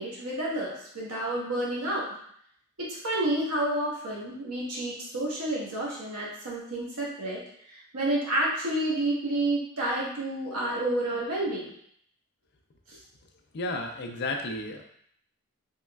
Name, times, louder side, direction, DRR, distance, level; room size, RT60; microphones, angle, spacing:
voice 1, 0.0-2.1 2.8-11.7 12.9-13.0, right 1 dB, 80° right, -4 dB, 1.1 m, -30 dB
voice 2, 13.5-14.8, left 2 dB, 50° left, 3 dB, 0.4 m, -32 dB
3.6 x 3.0 x 2.3 m, 0.66 s
head